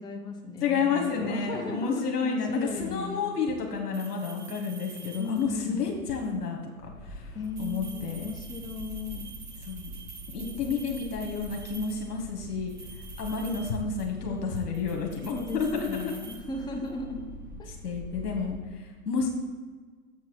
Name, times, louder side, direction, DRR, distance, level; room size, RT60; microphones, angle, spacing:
voice 1, 0.0-3.2 5.2-5.8 7.3-9.3 9.8-10.0 15.3-17.3 17.6-17.7, left 3 dB, 10° left, 2 dB, 0.7 m, -36 dB
voice 2, 0.6-6.6 7.0-8.3 9.6-10.0 10.3-12.7 13.2-16.1 17.8-19.3, left 5 dB, 75° left, 1 dB, 1.5 m, -30 dB
sound 1, 3.9-5.7 7.4-12.2 12.7-14.3 14.6-17.0, right 5 dB, 70° right, 1.8 m, -48 dB
sound 2, 6.8-18.5, equal, 15° right, 1.6 m, -44 dB
7.4 x 4.6 x 6.0 m, 1.4 s
hypercardioid pair, 120°, 47 cm